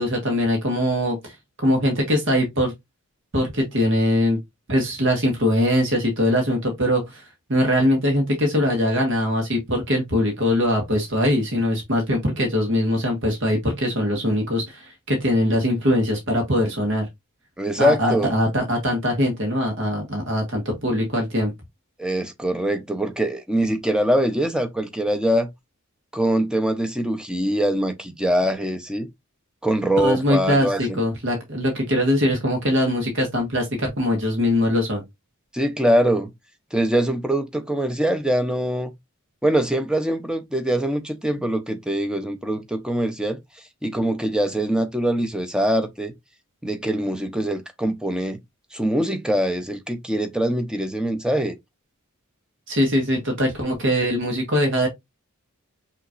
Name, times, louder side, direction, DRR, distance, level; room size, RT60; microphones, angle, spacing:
voice 1, 0.0-2.7 3.3-4.4 4.7-7.2 7.5-17.1 17.8-21.5 30.0-35.0 52.7-54.9, left 1 dB, 60° right, 1.6 m, -22 dB
voice 2, 17.6-18.3 22.0-25.5 26.1-29.1 29.6-31.0 35.5-36.3 36.7-38.9 39.4-43.4 43.8-46.1 46.6-48.4 48.7-51.5, right 1 dB, 5° right, 0.6 m, -23 dB
5.7 x 2.9 x 2.5 m
head